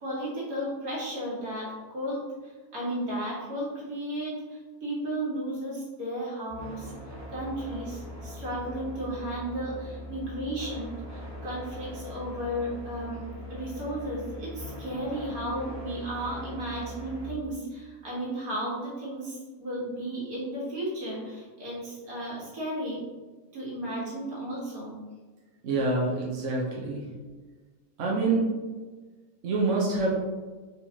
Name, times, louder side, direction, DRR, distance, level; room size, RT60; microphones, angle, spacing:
voice 1, 0.0-6.9 7.3-13.2 13.5-23.0 23.5-25.0, right 1 dB, 85° right, -6 dB, 2.1 m, -34 dB
sound 1, 6.5-17.3, left 1 dB, 15° right, 0.8 m, -41 dB
voice 2, 25.6-27.1 28.0-28.5 29.4-30.1, right 3 dB, 60° right, -3 dB, 1.1 m, -26 dB
4.5 x 3.9 x 2.8 m, 1.3 s
omnidirectional pair, 1.5 m